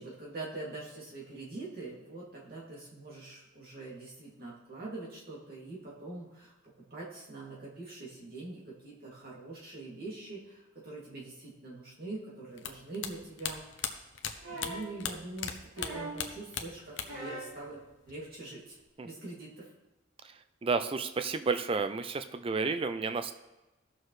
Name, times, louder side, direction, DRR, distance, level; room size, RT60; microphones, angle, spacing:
voice 1, 0.0-14.0 14.5-18.8 19.0-19.7, right 2 dB, 50° right, -4 dB, 2.5 m, -44 dB
sound 1, 12.6-15.5 15.8-17.3 17.6-18.3, left 8 dB, 60° left, 0.8 m, -37 dB
sound 2, 14.4-15.0 15.7-16.3 17.0-17.6 18.8-18.9, right 1 dB, 75° right, 2.8 m, -41 dB
voice 2, 20.6-23.3, right 4 dB, 25° right, 9 dB, 0.4 m, -31 dB
16.5 x 6.5 x 3.2 m, 1.0 s
head